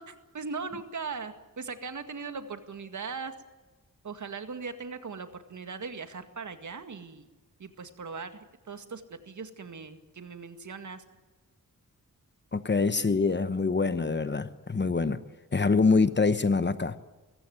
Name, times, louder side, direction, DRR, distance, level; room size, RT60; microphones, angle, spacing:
voice 1, 0.0-3.3 4.0-7.3 7.6-11.0, right 5 dB, 60° right, 9 dB, 2.0 m, -39 dB
voice 2, 12.5-15.2 15.5-17.0, left 4 dB, 35° left, 13 dB, 1.0 m, -25 dB
22.0 x 15.5 x 9.4 m, 1.2 s
wide cardioid pair, 95°, 33 cm